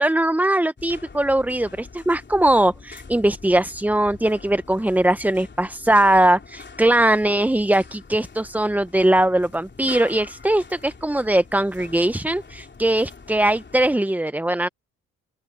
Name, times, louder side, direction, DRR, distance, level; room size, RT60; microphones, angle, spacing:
voice 1, 0.0-14.7, right 1 dB, 5° right, 0.7 m, -20 dB
sound 1, 0.8-14.0, left 4 dB, 30° left, 3.4 m, -44 dB
open air
hypercardioid pair, 55°, 35 cm